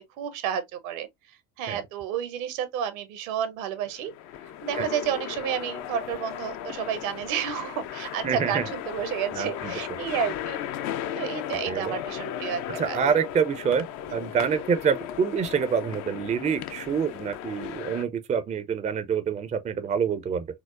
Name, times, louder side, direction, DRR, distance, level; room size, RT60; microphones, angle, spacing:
voice 1, 0.2-1.1 1.6-4.1 4.6-10.6 11.2-12.6 12.9-13.0 14.1-14.2, right 9 dB, 70° right, 0.8 m, -31 dB
sound 1, 3.7-18.0, left 10 dB, 40° left, 0.4 m, -36 dB
voice 2, 8.2-8.7 9.3-9.7 11.7-11.9 12.8-13.8 14.1-20.5, right 7 dB, 15° right, 0.4 m, -26 dB
4.5 x 2.0 x 2.3 m
hypercardioid pair, 65°, 43 cm